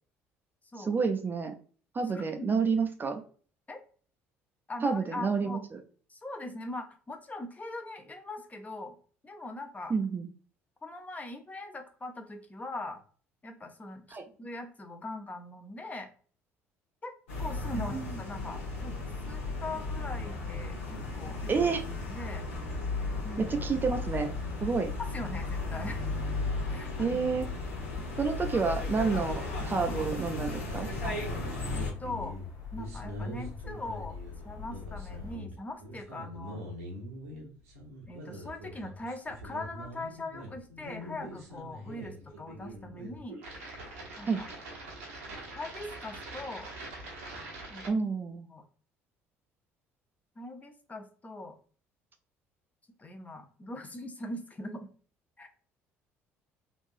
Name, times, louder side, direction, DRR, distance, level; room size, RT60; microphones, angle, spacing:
voice 1, 0.8-1.5 1.9-3.2 4.8-5.8 9.9-10.3 14.1-14.2 17.8-18.1 21.5-21.8 23.4-24.3 24.6-24.9 27.0-27.5 28.2-30.9 44.3-44.4 47.8-48.5, right 5 dB, 30° right, 6 dB, 0.5 m, -29 dB
voice 2, 2.1-2.6 3.7-3.8 4.7-5.6 6.1-9.0 9.2-9.9 10.8-13.0 13.4-16.1 17.0-18.9 19.3-21.7 22.1-22.5 23.2-23.5 25.0-26.0 26.7-27.2 28.0-28.1 29.9-30.0 31.0-31.2 31.7-32.4 32.7-34.2 34.4-36.6 38.1-43.4 44.2-44.4 45.5-46.7 47.7-47.8 48.5-48.7 50.4-51.6 53.0-54.9 55.4-55.5, left 2 dB, 20° left, 5 dB, 0.7 m, -41 dB
sound 1, 17.3-31.9, left 2 dB, 80° left, 0.9 m, -35 dB
sound 2, 19.7-35.4, left 7 dB, 55° left, 1.2 m, -43 dB
sound 3, 30.9-47.9, equal, 85° right, 0.9 m, -43 dB
3.2 x 2.6 x 2.4 m, 0.41 s
hypercardioid pair, 55°, 7 cm